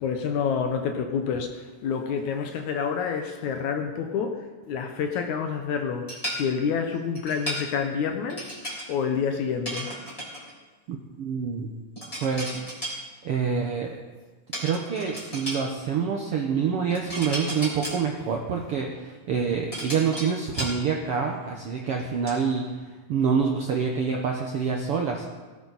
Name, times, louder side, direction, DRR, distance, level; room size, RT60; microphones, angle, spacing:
voice 1, 0.0-4.4 4.7-9.9, left 6 dB, 70° left, 5 dB, 2.2 m, -28 dB
sound 1, 6.1-6.4 7.1-7.7 8.3-8.9 9.6-10.5 12.0-13.0 14.5-15.6 16.9-18.0 19.3-20.8 21.3-21.4 21.8-22.4, equal, 10° left, 3.6 m, -34 dB
voice 2, 10.9-11.7 12.2-12.6 13.2-14.0 14.6-22.7 23.1-25.3, right 6 dB, 65° right, 1 dB, 1.4 m, -27 dB
18.0 x 12.5 x 4.1 m, 1.3 s
omnidirectional pair, 3.8 m